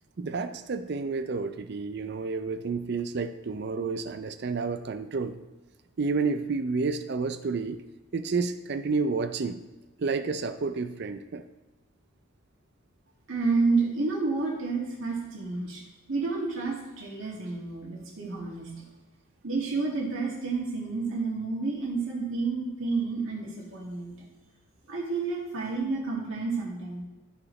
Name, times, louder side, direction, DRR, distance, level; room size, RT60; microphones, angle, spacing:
voice 1, 0.2-5.4 6.0-7.8 8.1-9.6 10.0-11.4, right 4 dB, 50° right, 11 dB, 0.4 m, -30 dB
voice 2, 13.3-15.8 16.1-18.7 19.4-24.3 24.9-27.0, right 3 dB, 75° right, -4 dB, 2.1 m, -30 dB
13.5 x 4.9 x 3.2 m, 1.1 s
head